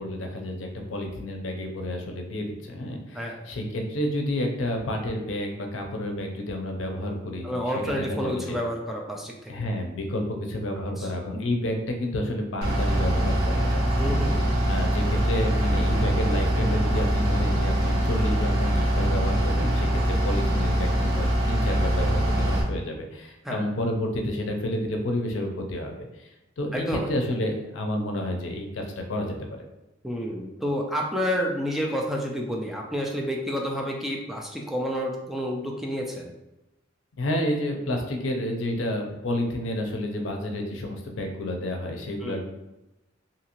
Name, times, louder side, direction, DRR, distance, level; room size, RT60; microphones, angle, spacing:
voice 1, 0.0-8.6 9.5-29.4 37.2-42.4, left 1 dB, 75° left, 3 dB, 0.5 m, -30 dB
voice 2, 7.4-9.7 11.0-11.4 14.0-14.4 23.4-23.6 26.7-27.1 30.0-36.3 42.2-42.4, equal, ahead, -1 dB, 0.3 m, -29 dB
Bus / Idling, 12.6-22.6, right 1 dB, 55° right, 0.7 m, -23 dB
2.8 x 2.5 x 2.9 m, 0.93 s
head